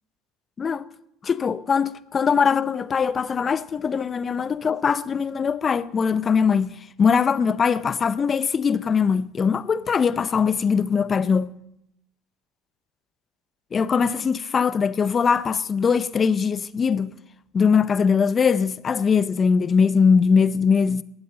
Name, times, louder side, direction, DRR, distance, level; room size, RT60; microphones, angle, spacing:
voice 1, 1.2-11.6 13.7-17.1 17.5-21.0, left 6 dB, 35° left, 0.6 m, -21 dB
20.0 x 8.0 x 4.0 m
hypercardioid pair, 80°, 0 cm